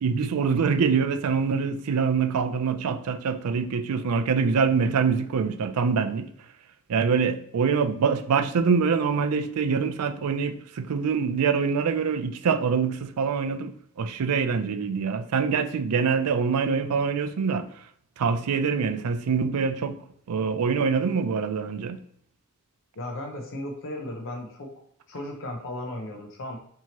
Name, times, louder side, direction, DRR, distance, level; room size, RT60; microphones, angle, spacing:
voice 1, 0.0-6.3 6.9-13.7 14.0-17.7 18.2-20.0 20.3-22.0, right 5 dB, 80° right, 0.4 m, -24 dB
voice 2, 23.0-24.7 25.1-26.6, left 1 dB, 60° left, 0.7 m, -35 dB
4.5 x 2.8 x 2.9 m
head